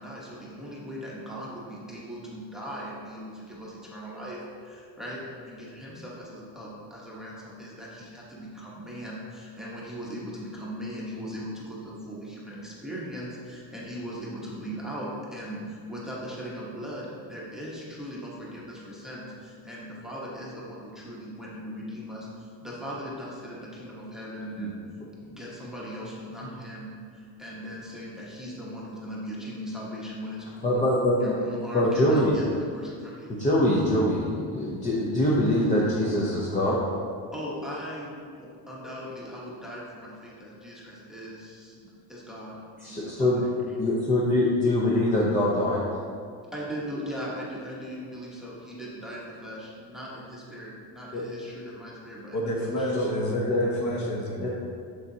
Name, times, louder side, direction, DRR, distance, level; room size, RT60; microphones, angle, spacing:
voice 1, 0.0-24.8 25.1-30.9 31.2-33.3 37.3-43.4 46.5-52.9, equal, ahead, -6 dB, 0.9 m, -39 dB
voice 2, 30.6-31.3 31.7-32.4 33.3-36.8 42.8-43.4 43.8-45.8 51.1-51.2 52.9-53.7 54.4-54.5, left 1 dB, 15° left, -5 dB, 0.6 m, -24 dB
voice 3, 52.3-54.5, equal, 40° left, -1 dB, 1.2 m, -30 dB
7.2 x 6.8 x 2.7 m, 2.2 s
cardioid pair, 150°, 47 cm